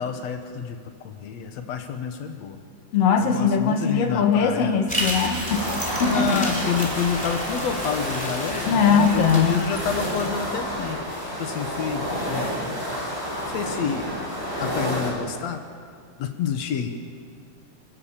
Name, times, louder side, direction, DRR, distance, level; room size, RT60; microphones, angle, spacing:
voice 1, 0.0-2.6 3.2-4.8 6.0-11.1 11.4-12.8 13.5-14.1 14.6-15.6 16.2-16.9, left 7 dB, 85° left, 6 dB, 1.5 m, -29 dB
voice 2, 2.9-5.7 6.0-6.4 8.6-9.6, left 6 dB, 55° left, 5 dB, 1.9 m, -20 dB
sound 1, 4.9-10.3, equal, ahead, 3.0 m, -32 dB
sound 2, 5.4-15.1, equal, 20° left, 7.1 m, -30 dB
28.5 x 16.0 x 7.4 m, 2.1 s
omnidirectional pair, 5.0 m